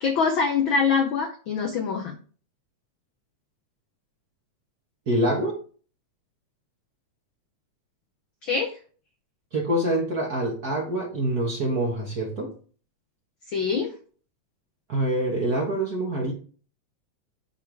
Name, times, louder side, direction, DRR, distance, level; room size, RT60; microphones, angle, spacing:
voice 1, 0.0-2.2 8.4-8.8 13.5-13.9, left 5 dB, 70° left, 4 dB, 1.1 m, -24 dB
voice 2, 5.1-5.5 9.5-12.5 14.9-16.3, right 1 dB, 45° right, -1 dB, 1.3 m, -25 dB
10.0 x 4.9 x 3.5 m, 0.41 s
omnidirectional pair, 3.3 m